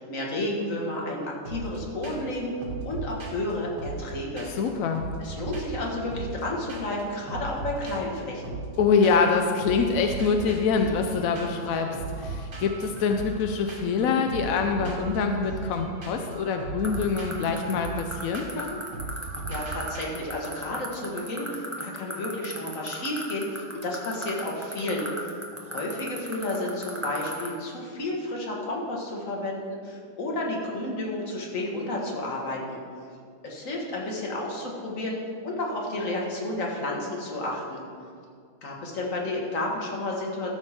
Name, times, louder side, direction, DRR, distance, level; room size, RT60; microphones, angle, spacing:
voice 1, 0.0-2.5 2.8-4.5 5.2-8.6 19.5-25.3 25.6-32.8 33.4-35.2 35.4-37.8 38.6-40.5, left 1 dB, 45° left, -2 dB, 1.8 m, -31 dB
sound 1, 1.4-1.8 2.0-2.3 2.6-4.7 4.9-6.4 6.7-7.0 7.3-9.3 9.6-20.0, right 3 dB, 70° right, 2.3 m, -37 dB
voice 2, 4.6-5.0 8.8-18.8, left 5 dB, 70° left, 4 dB, 0.8 m, -25 dB
sound 2, 16.8-27.5, right 1 dB, 10° right, 0.9 m, -34 dB
13.5 x 4.6 x 5.8 m, 2.2 s
omnidirectional pair, 2.0 m